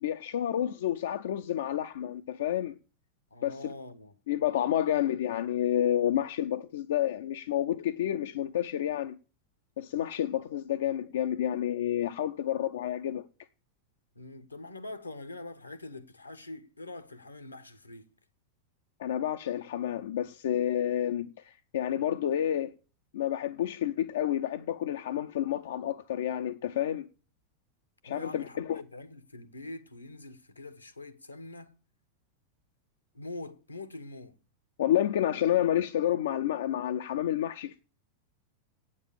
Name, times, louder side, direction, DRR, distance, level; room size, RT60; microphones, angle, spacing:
voice 1, 0.0-2.7 3.4-3.5 4.3-9.2 9.8-13.3 19.0-22.7 23.1-27.1 28.0-28.8 34.8-37.8, left 11 dB, 60° left, 0.5 m, -29 dB
voice 2, 3.3-4.2 14.1-18.1 28.1-31.8 33.1-34.4, left 2 dB, 85° left, 1.1 m, -44 dB
8.6 x 7.5 x 8.8 m
figure-of-eight pair, 90°, 0 cm